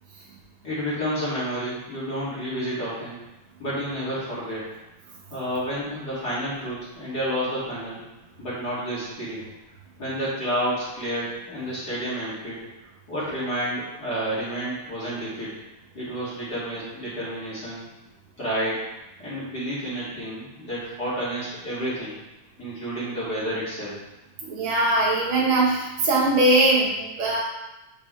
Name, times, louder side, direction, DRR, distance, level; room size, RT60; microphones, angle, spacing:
voice 1, 0.6-3.2 3.6-4.7 5.3-8.0 8.4-9.4 10.0-12.6 13.1-15.5 15.9-17.9 18.4-18.9 19.2-22.2 22.6-24.0, equal, 35° left, -10 dB, 2.2 m, -30 dB
voice 2, 24.4-27.4, right 2 dB, 70° right, -4 dB, 2.2 m, -21 dB
6.6 x 5.4 x 3.1 m, 0.99 s
omnidirectional pair, 3.5 m